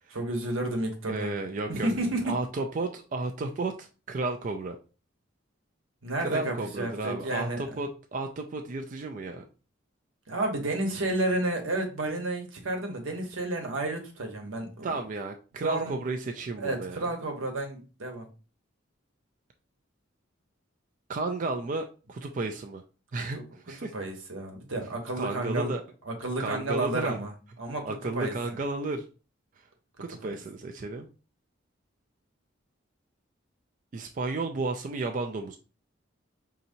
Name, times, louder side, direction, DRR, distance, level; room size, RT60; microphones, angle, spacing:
voice 1, 0.1-1.3 1.7-2.4 6.0-7.7 10.3-14.9 15.6-15.9 16.6-18.3 23.9-25.7 26.1-27.3 27.6-27.9 28.1-28.3 30.2-30.4, right 2 dB, 90° right, 3 dB, 1.0 m, -31 dB
voice 2, 1.1-1.9 2.2-4.8 6.2-9.4 14.8-17.0 21.1-22.8 23.1-23.9 25.1-25.8 26.4-27.2 27.9-29.1 29.6-29.7 30.0-31.1 33.9-35.6, right 3 dB, 40° right, 4 dB, 0.3 m, -33 dB
5.1 x 2.8 x 2.7 m, 0.34 s
head